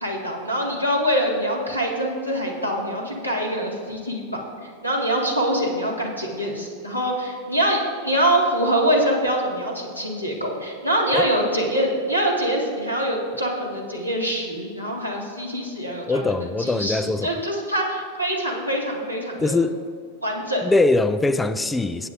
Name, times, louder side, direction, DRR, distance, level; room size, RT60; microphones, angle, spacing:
voice 1, 0.0-19.6 20.2-20.6, right 1 dB, 90° right, 1.7 m, -24 dB
voice 2, 16.0-17.3 19.4-19.8 20.6-22.1, left 2 dB, 10° left, 0.4 m, -22 dB
17.5 x 7.9 x 2.5 m
figure-of-eight pair, 90°, 0 cm